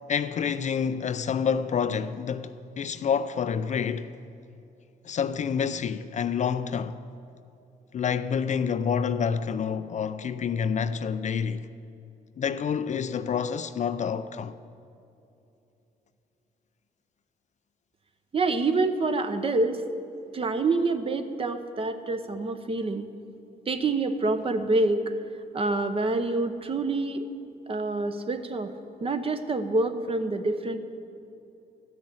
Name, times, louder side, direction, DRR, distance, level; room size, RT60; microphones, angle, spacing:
voice 1, 0.1-4.2 5.0-7.0 7.9-11.7 12.4-14.6, left 7 dB, 45° left, 0.4 m, -28 dB
voice 2, 18.3-19.8 20.3-23.1 23.7-25.0 25.5-27.3 27.7-28.7 29.0-30.8, right 3 dB, 35° right, 0.9 m, -26 dB
13.5 x 6.2 x 8.5 m
cardioid pair, 95°, 17 cm